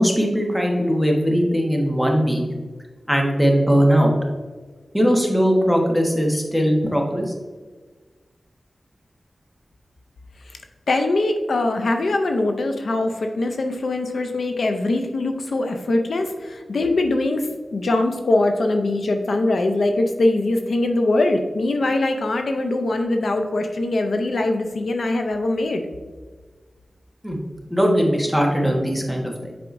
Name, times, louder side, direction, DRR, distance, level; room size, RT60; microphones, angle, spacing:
voice 1, 0.0-2.4 3.1-4.1 4.9-7.3 27.2-27.4 27.7-29.5, equal, 5° left, 0 dB, 1.2 m, -19 dB
voice 2, 10.9-25.8, left 2 dB, 80° left, 5 dB, 0.5 m, -22 dB
7.6 x 4.8 x 2.6 m, 1.4 s
wide cardioid pair, 80°, 0 cm